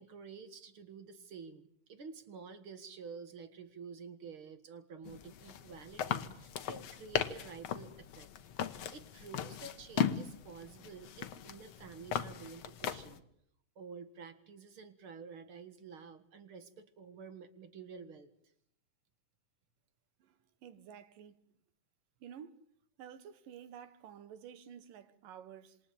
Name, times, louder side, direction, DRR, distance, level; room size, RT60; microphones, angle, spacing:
voice 1, 0.0-8.3 8.9-13.2 13.8-18.3, right 5 dB, 45° right, 2.1 m, -50 dB
sound 1, 5.0-13.2, left 9 dB, 60° left, 2.1 m, -38 dB
voice 2, 20.2-21.4 22.2-22.6 23.0-25.8, right 8 dB, 90° right, 3.2 m, -51 dB
27.5 x 22.5 x 8.7 m
omnidirectional pair, 3.8 m